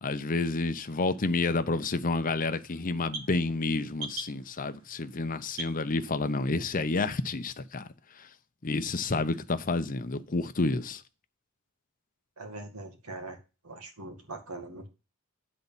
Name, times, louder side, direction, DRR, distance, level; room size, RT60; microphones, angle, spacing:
voice 1, 0.0-7.9 8.6-11.0, left 3 dB, 40° left, 0.7 m, -29 dB
sound 1, 1.1-6.6, right 3 dB, 70° right, 1.4 m, -45 dB
voice 2, 12.4-13.4 13.6-14.9, right 2 dB, 85° right, 2.2 m, -42 dB
9.5 x 4.1 x 7.2 m
head